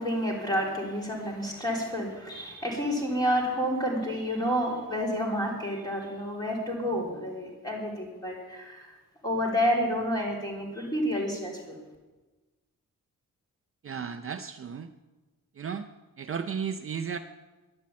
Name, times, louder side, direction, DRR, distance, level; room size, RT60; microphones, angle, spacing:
voice 1, 0.0-8.9 9.2-11.8, equal, 10° left, -2 dB, 3.7 m, -29 dB
voice 2, 13.8-14.9 15.6-15.9 16.2-17.2, right 6 dB, 40° right, 7 dB, 0.6 m, -34 dB
11.5 x 11.0 x 8.5 m, 1.2 s
wide cardioid pair, 165°, 33 cm